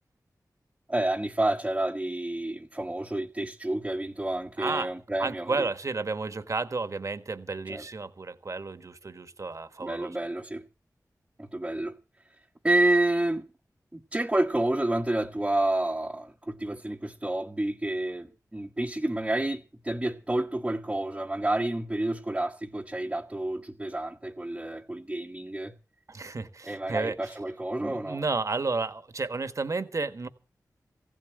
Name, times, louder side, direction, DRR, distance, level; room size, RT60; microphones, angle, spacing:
voice 1, 0.9-5.7 7.7-7.8 9.8-10.6 11.4-12.0 12.6-13.4 13.9-25.7 26.6-28.2, right 1 dB, 15° right, 1.1 m, -29 dB
voice 2, 4.6-4.9 5.2-10.2 26.1-27.2 27.8-30.3, right 3 dB, 50° right, 1.3 m, -32 dB
16.0 x 7.5 x 8.9 m
wide cardioid pair, 75°, 7 cm